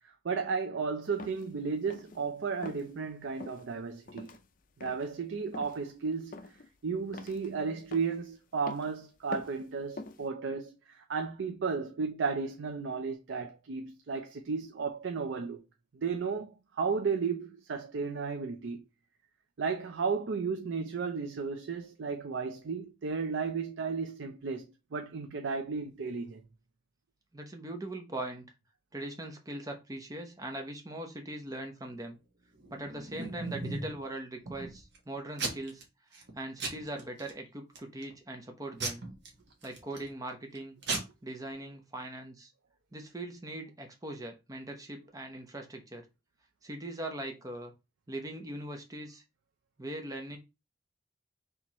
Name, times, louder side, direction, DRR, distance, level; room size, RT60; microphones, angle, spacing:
voice 1, 0.2-4.4 4.8-6.4 6.8-15.6 15.9-18.8 19.6-24.6 24.9-26.4, right 5 dB, 85° right, 0.5 m, -34 dB
sound 1, 1.2-1.5 1.9-2.2 2.6-2.9 3.4-3.6 4.1-4.4 4.8-5.1 5.5-5.8 6.3-6.7 7.1-7.5 7.9-8.2 8.7-8.9 9.3-9.7 10.0-10.3, left 3 dB, 45° left, 0.5 m, -44 dB
voice 2, 27.3-28.5 28.9-32.2 32.7-35.8 36.3-39.0 39.6-40.8 41.2-42.5 42.9-46.0 46.6-47.7 48.1-49.2 49.8-50.4, right 1 dB, 20° right, 0.8 m, -40 dB
Packing tape duct tape / Tearing, 32.6-34.0 34.5-35.0 35.4-35.8 36.1-36.3 36.6-37.3 37.8-38.1 38.8-40.1 40.5-40.6 40.8-41.0, right 3 dB, 60° right, 1.2 m, -36 dB
4.3 x 3.4 x 3.0 m
head